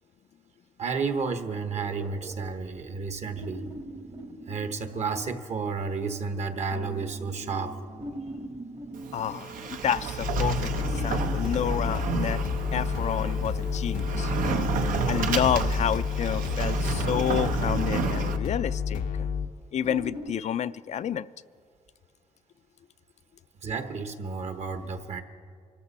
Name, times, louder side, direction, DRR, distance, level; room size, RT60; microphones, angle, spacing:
voice 1, 0.8-3.7 4.5-7.8 23.6-25.2, right 4 dB, 55° right, 8 dB, 1.1 m, -31 dB
sound 1, 1.7-5.4 6.7-10.0 10.7-12.8 14.2-16.3 16.8-18.8 19.8-20.3, right 1 dB, 30° right, 1.0 m, -42 dB
Sliding door, 8.9-18.4, right 6 dB, 85° right, 0.8 m, -31 dB
voice 2, 9.1-12.4 12.7-14.7 15.1-19.3 19.7-21.3, left 9 dB, 60° left, 14 dB, 0.4 m, -30 dB
sound 2, 10.2-19.5, left 6 dB, 85° left, 0.8 m, -30 dB
24.5 x 13.5 x 4.2 m, 2.1 s
cardioid pair, 95°, 13 cm